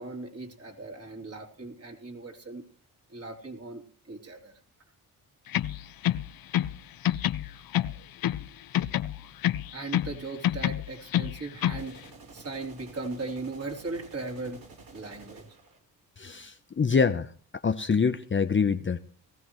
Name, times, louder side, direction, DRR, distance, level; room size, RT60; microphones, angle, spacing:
voice 1, 0.0-2.6 3.1-3.8 4.1-4.5 9.7-14.6 14.9-15.4, right 3 dB, 35° right, 3 dB, 3.4 m, -38 dB
sound 1, 5.5-6.8 7.0-8.5 8.7-10.2 10.4-11.9, left 12 dB, 60° left, 0.7 m, -28 dB
sound 2, 11.8-15.8, right 4 dB, 60° right, 4.0 m, -50 dB
voice 2, 16.2-17.3 17.6-19.0, left 5 dB, 30° left, 9 dB, 0.8 m, -25 dB
19.5 x 14.5 x 3.1 m, 0.42 s
cardioid pair, 70°, 39 cm